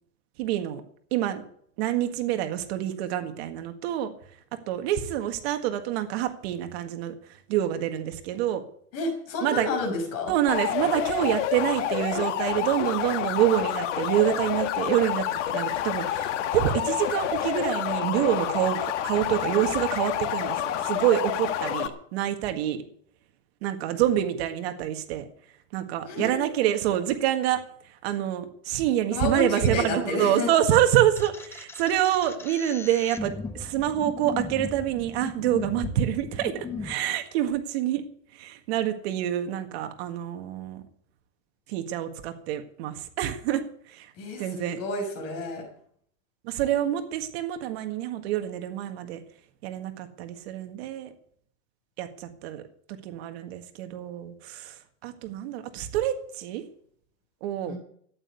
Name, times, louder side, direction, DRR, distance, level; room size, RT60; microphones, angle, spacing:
voice 1, 0.4-0.8 1.1-1.4 1.8-4.1 4.7-8.6 9.4-9.7 10.3-22.8 23.6-25.3 25.7-38.0 38.3-40.8 41.7-44.1 44.4-44.8 46.4-49.2 49.6-51.1 52.0-52.6 53.0-56.6 57.4-57.8, right 11 dB, 50° right, 7 dB, 1.8 m, -27 dB
voice 2, 8.9-10.3 26.1-26.4 29.1-30.5 44.2-45.7 57.7-57.8, left 2 dB, 40° left, 3 dB, 6.2 m, -30 dB
sound 1, 10.5-21.9, left 10 dB, 65° left, 1.9 m, -28 dB
sound 2, 31.2-36.9, left 4 dB, 5° left, 0.5 m, -37 dB
14.5 x 9.8 x 8.3 m, 0.63 s
supercardioid pair, 165°, 38 cm